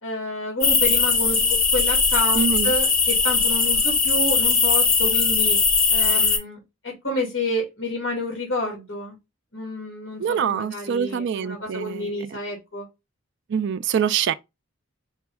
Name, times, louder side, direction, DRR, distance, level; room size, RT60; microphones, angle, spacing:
voice 1, 0.0-5.6 5.9-6.6 6.8-9.2 9.5-12.9, left 1 dB, 60° left, 2.0 m, -29 dB
sound 1, 0.6-6.4, left 5 dB, 40° left, 1.3 m, -20 dB
voice 2, 2.3-2.7 10.2-12.2 13.5-14.3, right 7 dB, 55° right, 0.3 m, -25 dB
5.0 x 2.3 x 3.3 m
head